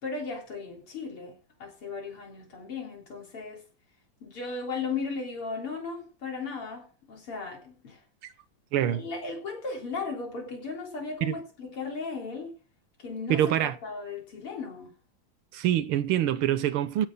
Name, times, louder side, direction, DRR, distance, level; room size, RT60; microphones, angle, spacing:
voice 1, 0.0-3.6 4.2-8.0 8.9-12.6 13.0-14.9, left 4 dB, 90° left, 4.5 m, -36 dB
voice 2, 8.7-9.1 11.2-11.4 13.3-13.8 15.5-17.1, right 11 dB, 85° right, 1.8 m, -25 dB
15.5 x 6.5 x 5.3 m
omnidirectional pair, 2.4 m